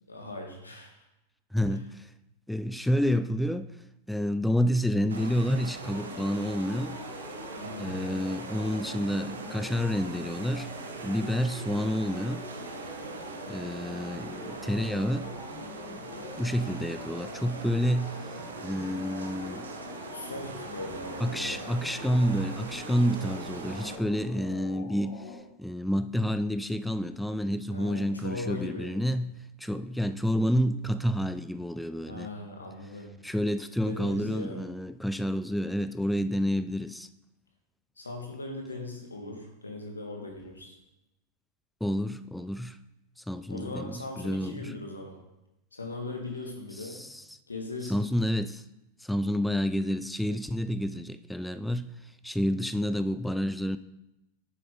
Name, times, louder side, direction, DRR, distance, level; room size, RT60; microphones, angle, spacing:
voice 1, 0.1-0.9 7.6-8.0 20.1-21.6 27.7-28.9 32.1-33.1 33.9-34.7 38.0-40.7 43.5-45.2 45.7-47.0 47.5-48.1, left 2 dB, 80° left, 2.0 m, -39 dB
voice 2, 1.5-2.1 2.5-3.8 4.1-7.0 7.8-10.8 11.0-12.5 13.5-15.4 16.4-18.3 18.6-19.7 21.2-32.3 33.2-37.1 41.8-42.8 43.2-44.7 46.8-47.4 47.8-48.6 49.0-53.8, equal, ahead, 0.3 m, -29 dB
sound 1, 5.1-24.0, right 4 dB, 70° right, 1.0 m, -42 dB
sound 2, 5.8-25.4, left 5 dB, 35° left, 1.4 m, -45 dB
10.0 x 7.6 x 3.9 m
figure-of-eight pair, 90°, 0 cm